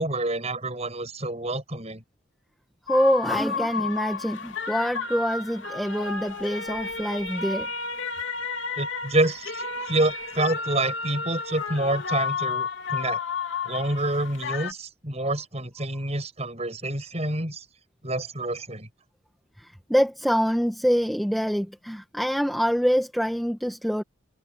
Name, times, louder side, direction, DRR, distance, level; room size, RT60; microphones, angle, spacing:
voice 1, 0.0-2.0 8.8-13.2 13.6-17.6 18.0-18.9, right 2 dB, 30° right, 6.6 m, -28 dB
sound 1, 2.9-14.7, left 5 dB, 65° left, 3.3 m, -32 dB
voice 2, 2.9-7.7 19.6-24.0, equal, ahead, 1.7 m, -25 dB
head